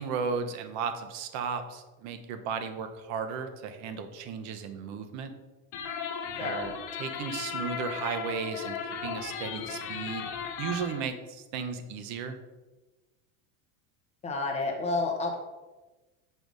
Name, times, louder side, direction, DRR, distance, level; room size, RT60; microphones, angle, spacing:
voice 1, 0.0-5.3 6.4-6.7 7.0-8.8 9.0-10.3 10.6-12.4, right 6 dB, 45° right, 8 dB, 0.7 m, -35 dB
sound 1, 5.7-11.1, left 6 dB, 50° left, 0.8 m, -36 dB
voice 2, 14.2-15.3, left 3 dB, 15° left, 1 dB, 0.7 m, -30 dB
6.3 x 3.4 x 5.2 m, 1.2 s
supercardioid pair, 155°, 41 cm